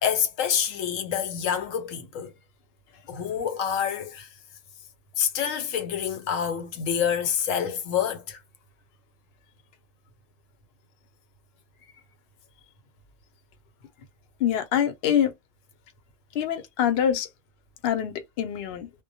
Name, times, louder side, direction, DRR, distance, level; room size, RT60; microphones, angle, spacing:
voice 1, 0.0-2.3 3.1-4.3 5.2-8.4, left 8 dB, 85° left, 1.0 m, -27 dB
voice 2, 14.4-15.3 16.3-17.3 17.8-18.9, left 9 dB, 60° left, 0.7 m, -25 dB
2.2 x 2.0 x 2.7 m
omnidirectional pair, 1.3 m